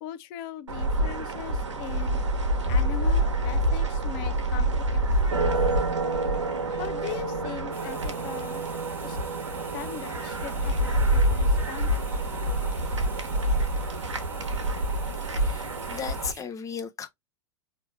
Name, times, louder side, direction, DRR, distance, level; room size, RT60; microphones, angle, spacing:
voice 1, 0.0-2.2 2.7-5.0 5.3-5.7 6.7-8.6 9.0-9.2 9.7-12.2, left 12 dB, 50° left, 0.7 m, -40 dB
sound 1, 0.7-16.3, right 1 dB, 85° right, 1.2 m, -27 dB
sound 2, 7.7-16.4, right 3 dB, 15° right, 1.0 m, -48 dB
voice 2, 15.1-17.1, left 6 dB, 20° left, 0.9 m, -36 dB
4.3 x 3.2 x 3.3 m
figure-of-eight pair, 95°, 15 cm